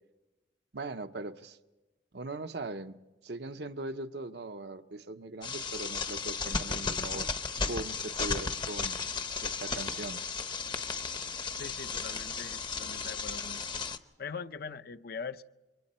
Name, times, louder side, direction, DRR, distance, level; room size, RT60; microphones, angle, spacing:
voice 1, 0.7-1.6 2.1-3.0 3.2-7.3 7.6-9.0 9.4-10.2, right 2 dB, 65° right, 0.9 m, -40 dB
sound 1, 5.4-14.0, left 4 dB, 25° left, 0.8 m, -35 dB
voice 2, 11.5-13.6 14.2-15.4, left 5 dB, 60° left, 0.6 m, -42 dB
29.5 x 23.5 x 4.3 m
head